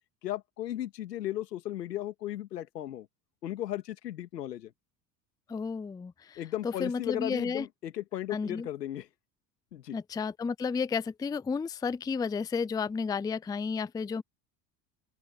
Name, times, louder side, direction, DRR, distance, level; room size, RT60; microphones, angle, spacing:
voice 1, 0.2-3.1 3.4-4.7 6.4-9.1 9.7-10.0, left 13 dB, 90° left, 2.4 m, -36 dB
voice 2, 5.5-6.4 6.6-7.7 8.3-8.7 9.9-14.2, left 5 dB, 10° left, 0.4 m, -32 dB
open air
hypercardioid pair, 75°, 47 cm